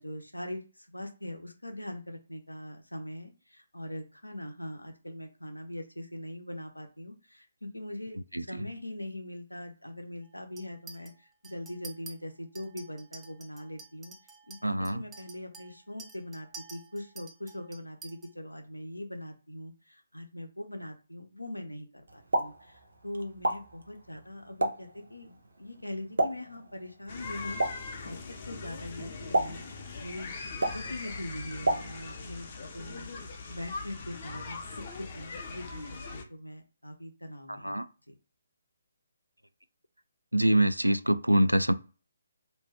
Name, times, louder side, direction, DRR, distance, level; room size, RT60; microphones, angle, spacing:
voice 1, 0.0-14.1 14.5-25.3 25.6-27.7 28.0-30.3 30.7-35.9 36.1-37.8 38.1-38.2, left 1 dB, 85° left, 0.7 m, -42 dB
voice 2, 8.3-8.7 14.6-15.0 37.5-37.9 40.3-41.7, right 1 dB, 90° right, 0.3 m, -25 dB
Chink clink, 10.6-11.1 11.4-12.1 12.6-18.3, right 4 dB, 10° right, 0.5 m, -49 dB
Explosion, 22.1-32.3, right 1 dB, 65° right, 0.7 m, -35 dB
sound 1, 27.1-36.2, left 4 dB, 35° left, 0.6 m, -41 dB
2.7 x 2.2 x 3.4 m
figure-of-eight pair, 140°, 0 cm